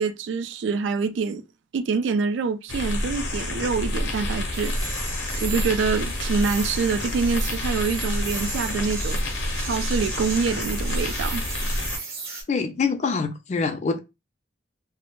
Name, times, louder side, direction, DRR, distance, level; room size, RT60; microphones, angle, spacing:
voice 1, 0.0-1.4 1.7-4.7 5.4-9.2 9.6-11.5, right 5 dB, 75° right, 0.3 m, -26 dB
sound 1, 2.7-12.0, left 1 dB, 80° left, 0.6 m, -28 dB
sound 2, 4.5-12.4, right 4 dB, 55° right, 0.8 m, -37 dB
sound 3, 4.6-11.3, right 3 dB, 20° right, 0.5 m, -41 dB
voice 2, 12.5-14.0, left 4 dB, 35° left, 0.3 m, -25 dB
2.1 x 2.0 x 2.9 m
head